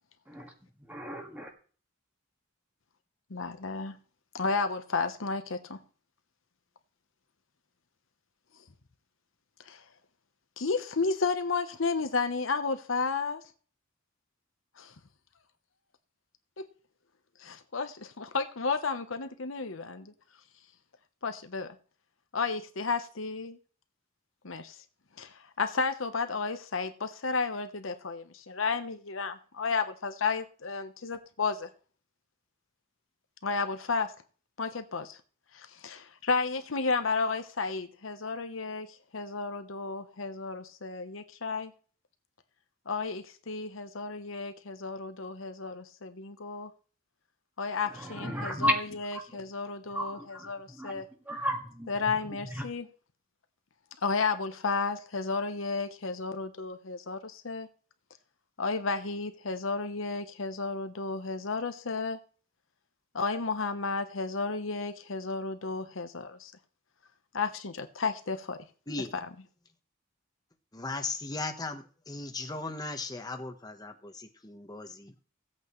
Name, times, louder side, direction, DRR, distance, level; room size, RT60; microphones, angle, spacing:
voice 1, 0.9-1.5 47.9-49.2 49.9-51.9 52.2-52.7, equal, 10° right, 1.8 m, -34 dB
voice 2, 3.3-4.0 4.3-5.8 9.7-9.8 10.6-13.4 14.8-14.9 16.6-16.7 17.4-20.1 21.2-21.7 22.3-23.6 24.4-24.8 25.2-31.7 33.4-34.1 34.6-35.2 35.5-41.7 42.9-46.7 47.6-51.1 51.9-52.9 54.0-57.7 58.6-62.2 63.1-66.5 67.3-68.6, left 4 dB, 80° left, 1.0 m, -32 dB
voice 3, 68.9-69.2 70.7-75.1, left 3 dB, 20° left, 1.1 m, -37 dB
16.0 x 8.3 x 3.2 m
head